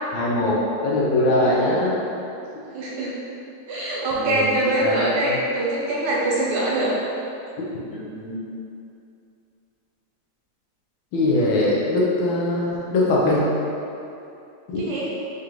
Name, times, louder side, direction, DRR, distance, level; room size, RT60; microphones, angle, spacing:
voice 1, 0.1-1.9 4.1-5.4 7.9-8.4 11.1-13.5 14.7-14.8, left 1 dB, 90° left, -6 dB, 1.5 m, -22 dB
voice 2, 1.3-1.7 2.7-3.1 3.7-6.9 14.8-15.1, right 1 dB, 65° right, -6 dB, 1.4 m, -23 dB
5.1 x 2.5 x 3.0 m, 2.7 s
omnidirectional pair, 2.0 m